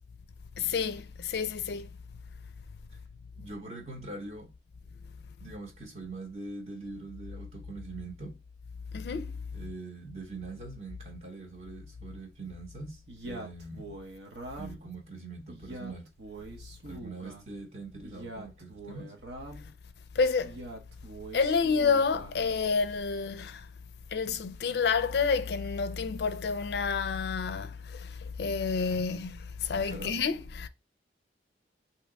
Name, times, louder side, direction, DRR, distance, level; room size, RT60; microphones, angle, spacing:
voice 1, 0.6-1.9 8.9-9.4 20.2-20.6 21.3-23.7 24.1-30.7, left 5 dB, 65° left, 0.4 m, -29 dB
voice 2, 3.4-4.5 5.4-8.4 9.5-13.9 14.6-16.1 16.8-19.1 29.7-30.2, right 3 dB, 40° right, 0.8 m, -43 dB
Male speech man speaking, 13.1-14.9 15.5-17.5 18.0-19.7 20.4-22.4, right 2 dB, 75° right, 0.9 m, -44 dB
3.4 x 2.8 x 4.7 m
head